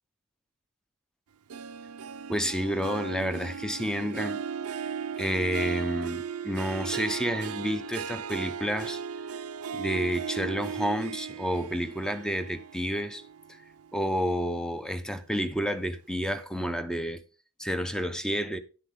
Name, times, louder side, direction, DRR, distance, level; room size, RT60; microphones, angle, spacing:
Harp, 1.5-14.2 14.6-15.0 15.5-15.6, right 7 dB, 70° right, 0.5 m, -37 dB
voice 1, 2.3-4.4 5.2-9.0 9.7-13.2 13.9-17.2 17.6-18.6, equal, 5° left, 0.7 m, -30 dB
10.0 x 7.9 x 3.7 m
head